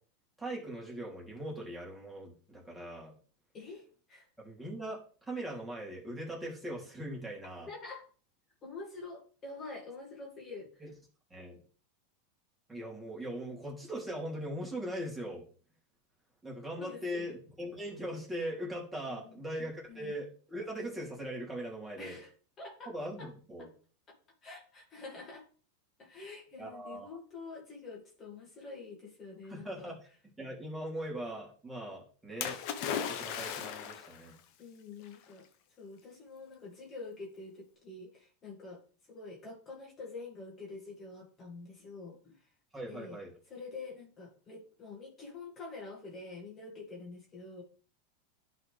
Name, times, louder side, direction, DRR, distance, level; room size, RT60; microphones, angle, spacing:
voice 1, 0.4-3.1 4.4-7.7 10.8-10.9 11.3-11.6 12.7-15.5 16.4-22.2 22.9-23.7 26.6-27.2 29.5-30.0 30.4-34.4 42.7-43.3, right 1 dB, 10° right, -3 dB, 3.1 m, -40 dB
voice 2, 3.5-4.3 7.7-8.1 8.6-10.9 16.8-17.3 19.1-19.4 19.9-20.1 22.0-22.3 22.6-22.9 23.2-23.3 23.6-23.7 24.4-25.5 26.0-29.9 34.6-35.4 35.8-38.8 39.1-42.5 42.9-43.2 43.5-47.6, left 3 dB, 30° left, -2 dB, 2.3 m, -46 dB
Splash splatter, 32.4-34.2 35.1-35.2, left 8 dB, 60° left, 1.1 m, -36 dB
10.5 x 4.2 x 3.4 m, 0.41 s
hypercardioid pair, 115°, 0 cm